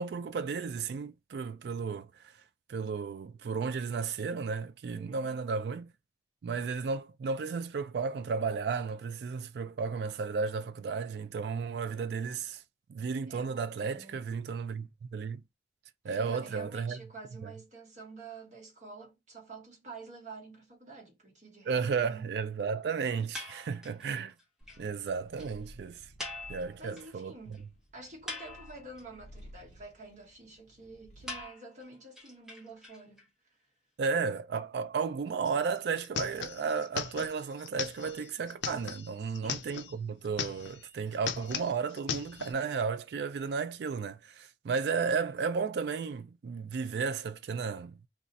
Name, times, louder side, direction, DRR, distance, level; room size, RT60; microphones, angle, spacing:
voice 1, 0.0-2.1 2.7-5.9 6.4-12.6 12.9-15.4 16.0-17.0 17.4-17.5 21.7-24.3 24.8-26.0 26.5-27.4 34.0-48.0, right 5 dB, 65° right, 0.3 m, -33 dB
voice 2, 4.9-5.4 13.3-14.2 16.0-22.3 26.8-27.6 27.9-33.3 39.2-39.7, right 3 dB, 40° right, 1.2 m, -49 dB
sound 1, 23.3-24.1 24.4-24.5 24.7-24.8 25.1-25.2 25.4-25.5 26.2-27.2 27.5-27.6 28.0-29.0 31.3-33.2, left 2 dB, 5° right, 0.9 m, -43 dB
Purr, 24.6-31.5, equal, 40° left, 0.9 m, -55 dB
sound 2, 35.5-35.6 35.8-39.9 40.2-40.9 41.1-42.5, left 8 dB, 80° left, 0.5 m, -38 dB
2.5 x 2.4 x 4.0 m
head